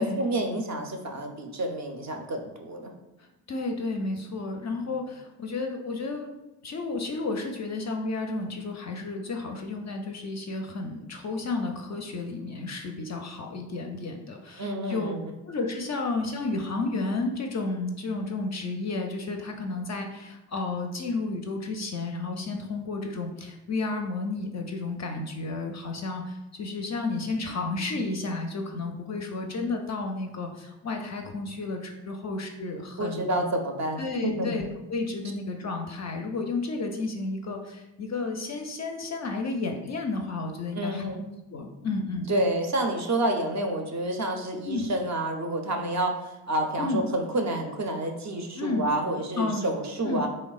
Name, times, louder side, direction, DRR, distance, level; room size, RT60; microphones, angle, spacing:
voice 1, 0.0-2.9 14.6-15.2 33.0-34.6 40.7-41.2 42.3-50.3, right 1 dB, 40° right, 3 dB, 0.5 m, -29 dB
voice 2, 3.2-6.3 6.6-15.1 15.5-33.3 34.0-41.0 41.5-42.3 44.6-44.9 46.8-47.1 48.6-48.9 49.4-49.7 50.0-50.3, left 3 dB, 40° left, 3 dB, 0.4 m, -32 dB
3.1 x 2.0 x 2.3 m, 0.97 s
supercardioid pair, 45°, 46 cm